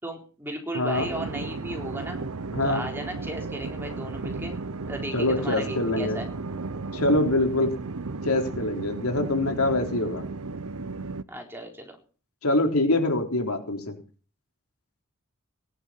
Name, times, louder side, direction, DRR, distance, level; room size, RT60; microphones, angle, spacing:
voice 1, 0.0-2.2 2.6-4.6 4.9-6.3 11.3-12.0, right 1 dB, 10° right, 2 dB, 4.1 m, -35 dB
voice 2, 0.7-1.1 2.5-2.8 5.1-6.2 6.9-7.7 8.2-10.2 12.4-13.9, left 2 dB, 90° left, 4 dB, 3.7 m, -24 dB
sound 1, 0.9-11.2, right 3 dB, 85° right, 0.8 m, -34 dB
18.0 x 11.0 x 5.7 m, 0.39 s
head